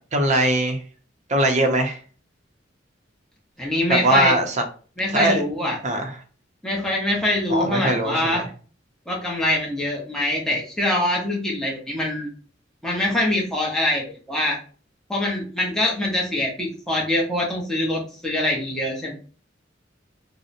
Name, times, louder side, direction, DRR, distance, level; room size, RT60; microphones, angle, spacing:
voice 1, 0.1-0.8 1.3-2.0 3.9-4.6 5.1-5.4 5.8-6.1 7.5-8.5, right 1 dB, 40° right, 4 dB, 0.6 m, -21 dB
voice 2, 3.6-4.3 5.0-5.8 6.6-8.4 9.1-12.3 12.8-14.6 15.1-19.1, left 1 dB, 5° left, -3 dB, 0.6 m, -24 dB
2.7 x 2.0 x 2.5 m, 0.39 s
head